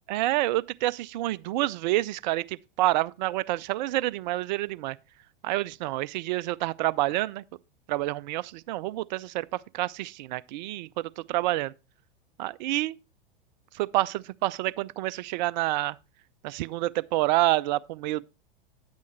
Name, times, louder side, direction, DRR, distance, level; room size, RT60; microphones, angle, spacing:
voice 1, 0.1-5.0 5.4-7.4 7.9-11.7 12.4-13.0 13.7-16.0 16.4-18.3, right 17 dB, 50° right, 0.5 m, -28 dB
9.4 x 8.4 x 3.2 m
hypercardioid pair, 100°, 29 cm